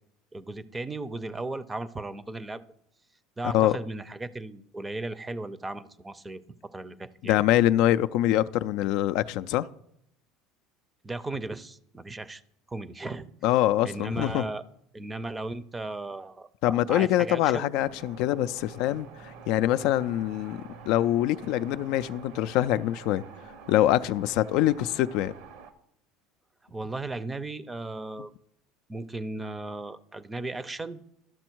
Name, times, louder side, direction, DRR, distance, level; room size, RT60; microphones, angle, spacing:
voice 1, 0.3-2.6 3.4-6.4 6.7-7.4 11.0-12.4 12.7-13.3 13.8-14.6 14.9-17.7 26.6-28.3 28.9-31.0, right 2 dB, 15° right, 0.5 m, -36 dB
voice 2, 7.2-9.7 13.4-14.4 16.6-23.2 23.7-25.3, left 13 dB, 65° left, 0.3 m, -24 dB
sound 1, 17.7-25.7, right 5 dB, 75° right, 0.9 m, -47 dB
12.0 x 6.2 x 4.5 m
supercardioid pair, 110°, 0 cm